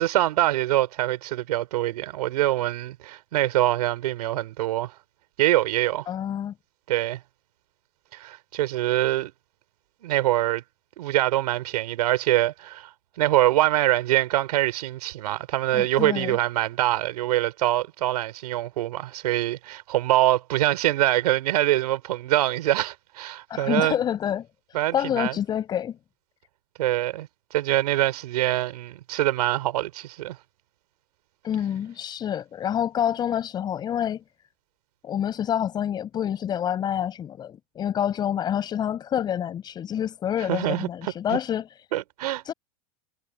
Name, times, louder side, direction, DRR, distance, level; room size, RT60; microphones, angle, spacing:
voice 1, 0.0-4.9 5.4-6.1 6.9-7.2 8.1-9.3 10.0-10.6 11.0-12.9 13.2-24.0 24.7-25.4 26.8-30.4 40.5-41.4 41.9-42.4, right 15 dB, 80° right, 3.8 m, -24 dB
voice 2, 6.1-6.5 15.7-16.4 23.5-24.5 24.9-26.0 31.4-34.2 35.0-41.7 42.4-42.5, left 9 dB, 20° left, 5.0 m, -27 dB
supercardioid pair, 160°, 20 cm